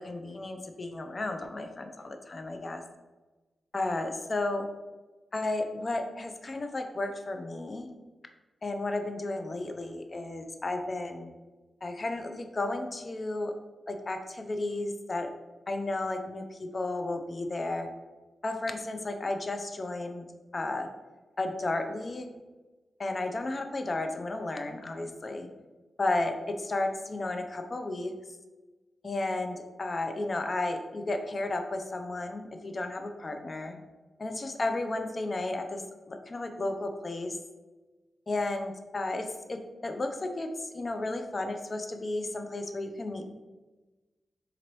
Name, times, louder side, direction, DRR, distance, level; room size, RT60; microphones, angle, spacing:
voice 1, 0.0-2.8 3.7-4.6 5.3-7.9 8.6-11.3 11.8-13.5 13.9-15.3 15.7-17.9 18.4-20.2 20.5-20.9 21.4-22.3 23.0-25.5 26.0-28.1 29.0-33.8 34.2-37.4 38.3-43.3, left 2 dB, 45° left, 6 dB, 0.4 m, -33 dB
3.8 x 3.0 x 3.0 m, 1.2 s
cardioid pair, 55°, 0 cm